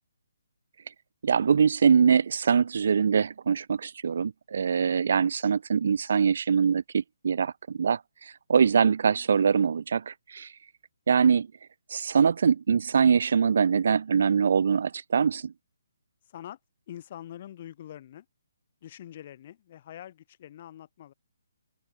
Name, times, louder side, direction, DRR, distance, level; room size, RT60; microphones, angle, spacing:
voice 1, 1.2-10.6 11.1-11.5 11.9-15.5, right 6 dB, 50° right, 0.3 m, -23 dB
voice 2, 16.2-16.6 16.9-18.3 18.8-21.1, left 11 dB, 30° left, 2.8 m, -44 dB
open air
hypercardioid pair, 170°, 0 cm